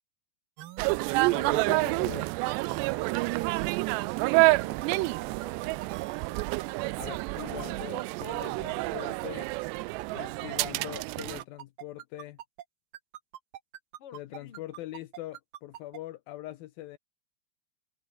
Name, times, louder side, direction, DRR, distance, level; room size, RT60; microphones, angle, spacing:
sound 1, 0.6-12.6 12.9-16.0, right 13 dB, 65° right, 2.8 m, -44 dB
sound 2, 0.8-11.4, right 23 dB, 85° right, 2.5 m, -28 dB
voice 1, 1.3-2.3 7.0-9.5 10.1-12.4 14.1-17.0, left 15 dB, 80° left, 2.1 m, -42 dB
voice 2, 4.0-5.8 14.0-14.7, left 9 dB, 40° left, 2.4 m, -54 dB
omnidirectional pair, 5.3 m